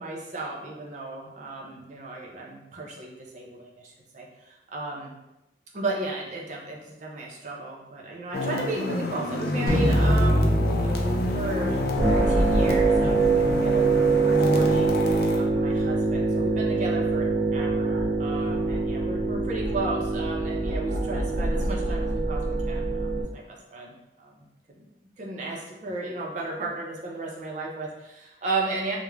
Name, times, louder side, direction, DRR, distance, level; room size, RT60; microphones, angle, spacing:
voice 1, 0.0-5.1 5.7-10.6 10.8-11.8 12.1-14.9 15.3-17.3 17.5-24.9 25.2-29.0, right 2 dB, 40° right, -1 dB, 0.5 m, -34 dB
sound 1, 8.3-15.4, left 2 dB, 55° left, 0.3 m, -28 dB
sound 2, 9.7-15.6, equal, 20° left, 0.7 m, -28 dB
sound 3, 12.0-23.2, right 3 dB, 90° right, 0.6 m, -24 dB
2.3 x 2.1 x 3.1 m, 0.92 s
head